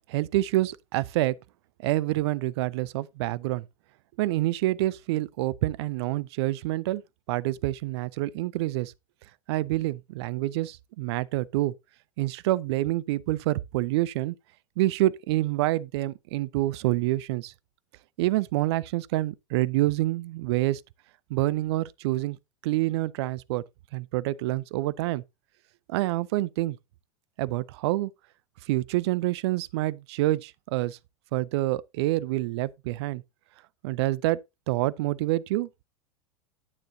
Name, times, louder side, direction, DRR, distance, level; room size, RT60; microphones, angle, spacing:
voice 1, 0.1-1.4 1.8-3.6 4.2-7.0 7.3-8.9 9.5-11.7 12.2-14.3 14.8-17.5 18.2-20.8 21.3-22.4 22.6-23.6 23.9-25.2 25.9-26.8 27.4-28.1 28.7-31.0 31.3-33.2 33.8-34.4 34.7-35.8, right 17 dB, 50° right, 0.5 m, -27 dB
9.7 x 8.9 x 2.6 m
figure-of-eight pair, 85°, 17 cm